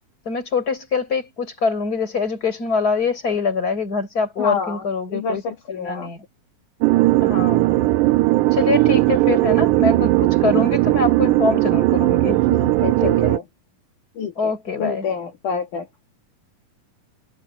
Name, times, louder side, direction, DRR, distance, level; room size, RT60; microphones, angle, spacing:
voice 1, 0.3-5.4 5.8-6.2 7.2-8.0 8.5-12.4 13.0-13.3 14.4-15.1, left 4 dB, 25° left, 6.0 m, -24 dB
voice 2, 4.4-4.8 5.1-6.1 12.5-13.4 14.2-14.5 14.8-15.9, left 6 dB, 65° left, 3.6 m, -27 dB
sound 1, 6.8-13.4, right 18 dB, 80° right, 2.0 m, -17 dB
omnidirectional pair, 3.9 m